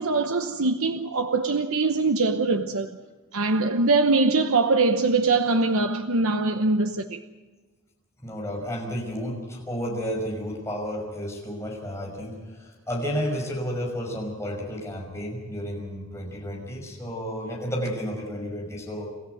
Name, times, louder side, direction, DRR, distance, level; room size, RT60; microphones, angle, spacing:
voice 1, 0.0-3.0 3.3-7.2, right 3 dB, 75° right, 1.0 m, -22 dB
voice 2, 8.2-19.1, equal, 10° left, 5.9 m, -32 dB
28.0 x 14.0 x 8.0 m
head